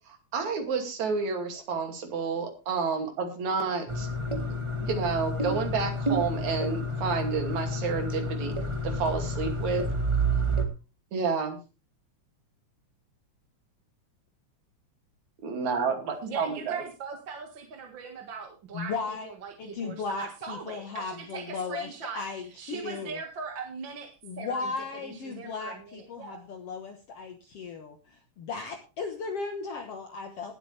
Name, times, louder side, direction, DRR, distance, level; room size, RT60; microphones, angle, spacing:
voice 1, 0.1-4.1 4.5-8.5 8.8-9.8 11.1-11.6 15.4-16.8, right 5 dB, 70° right, 4 dB, 3.8 m, -30 dB
sound 1, 3.9-10.6, right 1 dB, 15° right, 1.3 m, -29 dB
voice 2, 16.2-24.7 25.0-26.4, right 5 dB, 45° right, 3 dB, 2.1 m, -40 dB
voice 3, 18.7-19.3 19.6-21.9 22.2-23.2 24.2-30.5, left 4 dB, 60° left, 4 dB, 2.1 m, -36 dB
19.0 x 8.4 x 3.3 m, 0.31 s
omnidirectional pair, 3.5 m